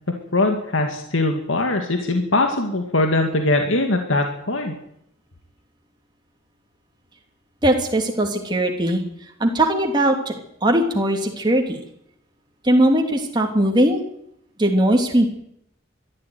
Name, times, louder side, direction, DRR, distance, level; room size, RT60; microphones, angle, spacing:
voice 1, 0.3-4.7, left 2 dB, 80° left, 4 dB, 2.3 m, -21 dB
voice 2, 7.6-9.0 9.4-10.3 10.6-11.8 12.6-14.0 14.6-15.3, right 1 dB, 20° right, 2 dB, 2.9 m, -19 dB
22.0 x 13.5 x 9.5 m, 0.74 s
head